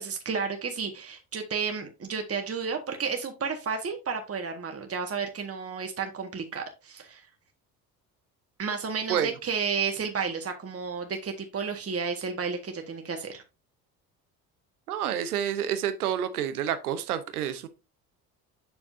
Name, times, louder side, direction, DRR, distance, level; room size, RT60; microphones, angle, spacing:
voice 1, 0.0-7.2 8.6-13.4, right 5 dB, 30° right, 1.8 m, -32 dB
voice 2, 14.9-17.7, right 9 dB, 90° right, 0.9 m, -28 dB
8.1 x 6.6 x 2.7 m
hypercardioid pair, 55°, 43 cm